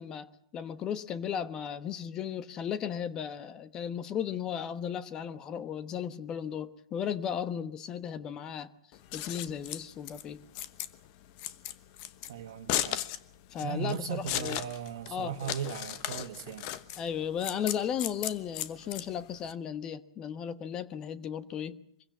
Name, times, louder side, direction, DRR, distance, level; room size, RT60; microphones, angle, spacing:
voice 1, 0.0-8.7 9.1-10.4 13.5-14.6 15.1-15.7 17.0-21.8, left 8 dB, 30° left, 1.2 m, -35 dB
Scissors, 8.9-19.5, left 13 dB, 50° left, 1.1 m, -36 dB
voice 2, 12.3-13.0 13.6-16.7, right 8 dB, 70° right, 1.6 m, -37 dB
24.0 x 16.0 x 8.4 m
hypercardioid pair, 125°, 2 cm